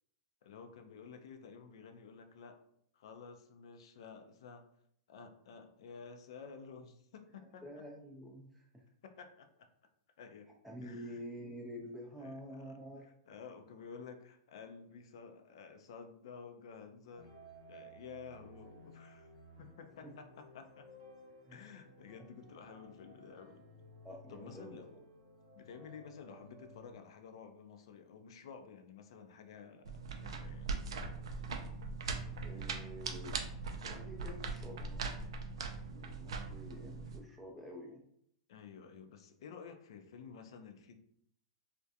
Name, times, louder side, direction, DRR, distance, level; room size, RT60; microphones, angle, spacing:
voice 1, 0.4-2.6 2.9-4.6 5.1-7.6 9.0-9.5 10.2-10.5 10.8-11.2 12.2-12.3 12.7-12.8 13.3-17.3 17.7-19.3 19.6-20.9 21.5-23.6 24.3-24.9 25.5-30.7 38.5-40.9, left 6 dB, 70° left, 7 dB, 0.4 m, -52 dB
voice 2, 7.4-8.8 10.6-13.1 20.0-20.1 21.5-21.6 24.0-25.0 32.4-35.2 35.9-38.1, equal, ahead, -2 dB, 0.4 m, -49 dB
sound 1, 17.1-26.9, equal, 65° right, 0.8 m, -57 dB
sound 2, 29.8-37.2, right 4 dB, 80° right, 0.3 m, -41 dB
2.4 x 2.1 x 2.7 m, 0.69 s
hypercardioid pair, 120°, 3 cm